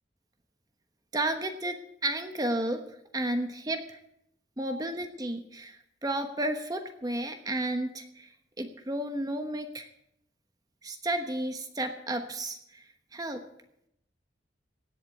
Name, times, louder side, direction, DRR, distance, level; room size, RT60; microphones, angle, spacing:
voice 1, 1.1-1.8 2.0-2.8 3.1-4.0 4.6-8.3 8.6-9.9 10.8-12.8 13.1-13.4, right 1 dB, 20° right, 6 dB, 1.1 m, -32 dB
17.0 x 7.9 x 8.6 m, 0.77 s
head